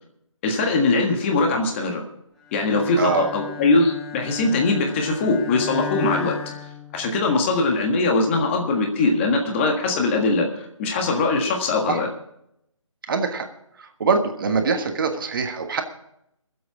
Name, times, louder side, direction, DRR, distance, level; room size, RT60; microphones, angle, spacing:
voice 1, 0.4-2.0 2.5-6.4 6.9-12.1, left 3 dB, 20° left, 2 dB, 1.6 m, -21 dB
Bowed string instrument, 2.5-7.5, left 7 dB, 5° left, 1.2 m, -35 dB
voice 2, 3.0-3.3 11.9-12.0 13.1-13.5 13.8-15.8, right 4 dB, 40° right, 5 dB, 1.5 m, -23 dB
21.5 x 7.8 x 4.8 m, 0.76 s
figure-of-eight pair, 155°, 17 cm